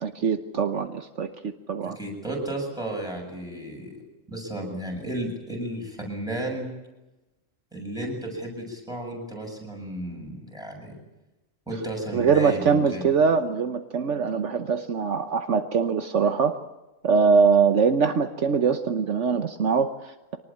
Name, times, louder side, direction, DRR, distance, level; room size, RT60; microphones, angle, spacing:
voice 1, 0.0-2.0 12.1-16.6 17.0-20.4, right 5 dB, 65° right, 8 dB, 1.3 m, -23 dB
voice 2, 1.8-3.9 4.3-6.7 7.7-11.0 11.7-13.1, right 1 dB, 5° right, 0 dB, 7.4 m, -33 dB
24.5 x 19.5 x 8.7 m, 1.0 s
omnidirectional pair, 1.3 m